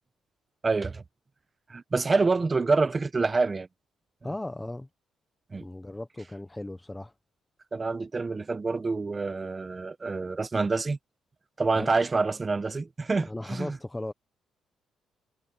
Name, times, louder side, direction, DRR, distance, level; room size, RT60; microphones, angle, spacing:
voice 1, 0.6-1.0 1.7-3.7 5.5-5.7 7.7-11.0 11.6-13.8, right 3 dB, 30° right, 1.2 m, -27 dB
voice 2, 4.2-4.9 5.6-7.1 11.7-11.9 13.3-14.1, left 1 dB, 10° left, 1.0 m, -36 dB
cardioid pair, 90°, 0 cm